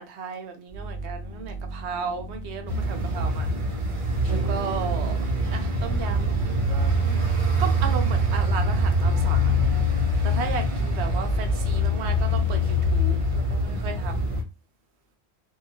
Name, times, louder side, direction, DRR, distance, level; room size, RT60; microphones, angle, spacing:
voice 1, 0.0-3.5 4.3-5.2 5.5-7.2 7.6-9.5 10.2-14.3, right 6 dB, 90° right, 0.9 m, -35 dB
sound 1, 0.7-9.1, right 7 dB, 80° left, 1.0 m, -29 dB
sound 2, 2.7-14.4, left 2 dB, 40° right, 0.5 m, -25 dB
sound 3, 4.2-12.0, right 5 dB, 60° right, 0.9 m, -41 dB
2.8 x 2.3 x 2.7 m
omnidirectional pair, 1.1 m